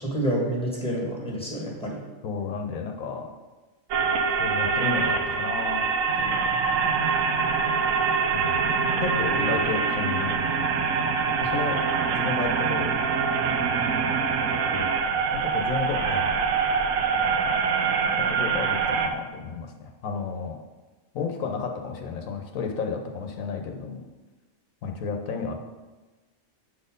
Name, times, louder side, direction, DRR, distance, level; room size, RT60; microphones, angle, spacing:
voice 1, 0.0-2.0, right 1 dB, 5° left, -2 dB, 1.7 m, -28 dB
voice 2, 2.2-3.3 4.4-5.9 6.2-6.5 8.3-8.6 9.0-10.4 11.4-11.8 12.1-13.1 14.7-14.9 15.3-16.3 18.2-20.6 21.1-24.1 24.8-25.6, left 5 dB, 85° left, 3 dB, 1.2 m, -32 dB
sound 1, 3.9-19.1, right 5 dB, 80° right, 1.1 m, -24 dB
7.6 x 4.2 x 5.2 m, 1.2 s
omnidirectional pair, 1.4 m